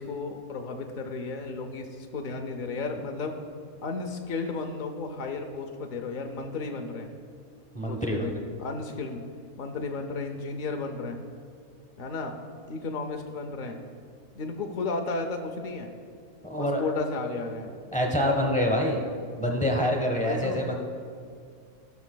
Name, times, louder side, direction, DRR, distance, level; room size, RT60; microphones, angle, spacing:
voice 1, 0.0-3.3 3.8-7.1 7.9-8.3 8.6-9.2 9.6-11.2 12.0-12.4 12.7-13.8 14.3-15.9 16.6-17.8 20.1-20.6, left 3 dB, 70° left, 4 dB, 0.4 m, -33 dB
voice 2, 7.7-8.4 16.4-16.8 17.9-19.0 19.4-20.7, equal, 10° left, 1 dB, 0.4 m, -26 dB
15.5 x 6.0 x 2.2 m, 2.2 s
omnidirectional pair, 1.5 m